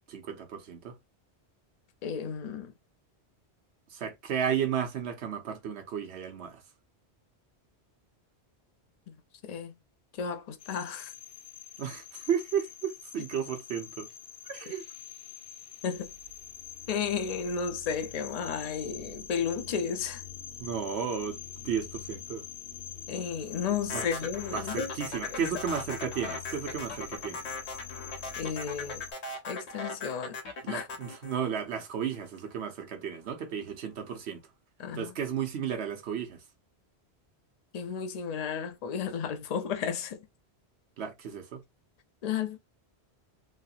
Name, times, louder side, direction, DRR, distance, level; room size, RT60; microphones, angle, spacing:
voice 1, 0.1-0.9 3.9-6.6 11.8-14.1 14.4-14.8 20.6-22.4 23.9-24.1 24.5-27.4 30.6-34.4 34.9-36.4 41.0-41.6, right 8 dB, 75° right, 1.1 m, -33 dB
voice 2, 2.0-2.7 9.1-9.2 9.4-9.8 10.2-11.1 15.8-16.1 16.9-20.2 23.1-24.9 25.3-25.4 28.4-29.0 29.5-30.4 30.7-30.9 34.8-35.1 37.7-40.3 42.2-42.6, left 7 dB, 50° left, 0.5 m, -33 dB
sound 1, 10.6-29.1, left 8 dB, 65° left, 1.2 m, -45 dB
sound 2, 23.9-32.3, left 3 dB, 80° left, 1.2 m, -39 dB
3.1 x 2.8 x 2.4 m
omnidirectional pair, 1.1 m